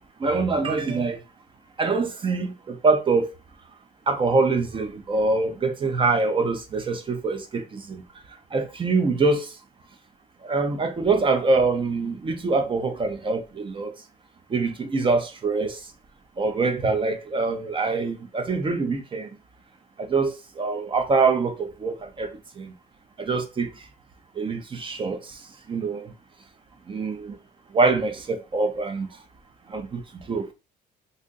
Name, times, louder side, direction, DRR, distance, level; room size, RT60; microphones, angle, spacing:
voice 1, 0.2-1.2 1.8-3.3 4.1-8.0 8.5-9.5 10.4-13.9 14.5-15.8 16.4-19.3 20.0-22.3 22.6-22.7 23.2-23.7 24.4-25.2 25.7-26.0 26.9-27.3 27.7-29.1 29.7-30.0 30.3-30.5, right 3 dB, 30° right, 0.7 m, -24 dB
2.6 x 2.5 x 3.8 m
cardioid pair, 110°, 17 cm